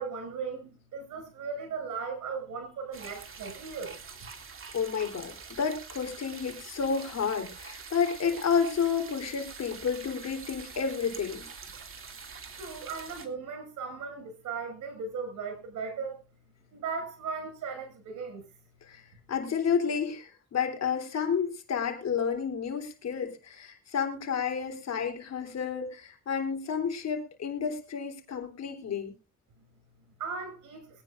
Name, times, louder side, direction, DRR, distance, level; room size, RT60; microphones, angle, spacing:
voice 1, 0.0-4.0 12.6-16.2 16.7-18.4 30.2-30.8, right 5 dB, 80° right, 6.4 m, -37 dB
sound 1, 2.9-13.3, right 5 dB, 45° right, 2.5 m, -45 dB
voice 2, 4.7-11.5 18.9-19.0 19.3-29.1, left 6 dB, 60° left, 3.7 m, -30 dB
23.0 x 9.6 x 2.6 m
cardioid pair, 90°, 30 cm